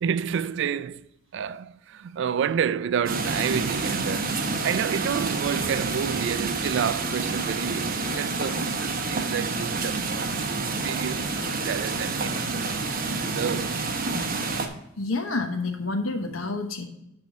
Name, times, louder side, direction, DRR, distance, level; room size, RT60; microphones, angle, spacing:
voice 1, 0.0-1.1 1.3-11.3 11.6-12.7 13.2-13.8, right 8 dB, 65° right, 0.3 m, -29 dB
sound 1, 3.1-14.7, right 3 dB, 45° right, 1.0 m, -28 dB
voice 2, 15.0-16.9, left 3 dB, 90° left, 1.0 m, -28 dB
10.5 x 3.7 x 6.0 m
head